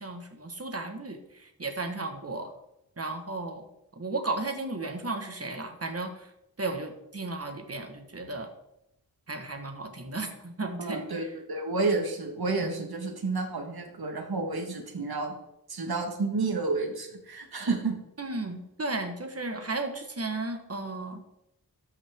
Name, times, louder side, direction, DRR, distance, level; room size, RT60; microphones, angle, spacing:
voice 1, 0.0-2.5 3.0-3.6 4.0-6.3 6.6-8.5 9.3-11.3 18.2-21.2, right 2 dB, 40° right, 5 dB, 1.5 m, -34 dB
voice 2, 10.8-15.3 15.7-18.0, right 3 dB, 70° right, 2 dB, 1.6 m, -30 dB
13.0 x 5.8 x 3.7 m, 0.83 s
wide cardioid pair, 60°, 38 cm